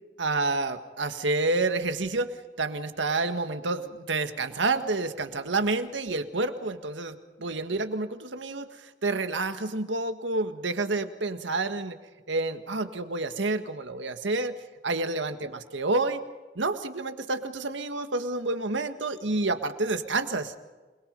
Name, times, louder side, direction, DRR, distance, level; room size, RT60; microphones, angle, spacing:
voice 1, 0.2-12.0 12.3-14.6 14.8-16.2 16.6-20.5, right 3 dB, 90° right, 8 dB, 1.7 m, -29 dB
28.0 x 21.5 x 5.4 m, 1.2 s
head